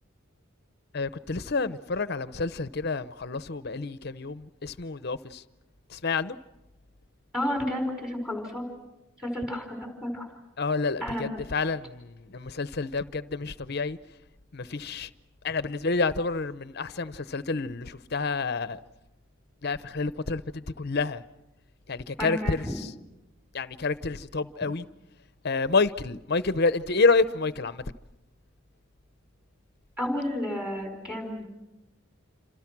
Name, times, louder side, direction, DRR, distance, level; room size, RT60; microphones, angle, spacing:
voice 1, 0.9-5.4 5.9-6.4 10.6-14.0 14.5-15.1 15.4-18.8 19.6-21.2 21.9-22.6 23.5-24.8 25.4-27.8, left 4 dB, 50° left, 0.8 m, -28 dB
voice 2, 7.3-8.6 9.2-10.3 11.0-11.4 22.2-22.8 30.0-31.5, left 1 dB, 5° right, 4.7 m, -31 dB
28.5 x 26.5 x 6.1 m
head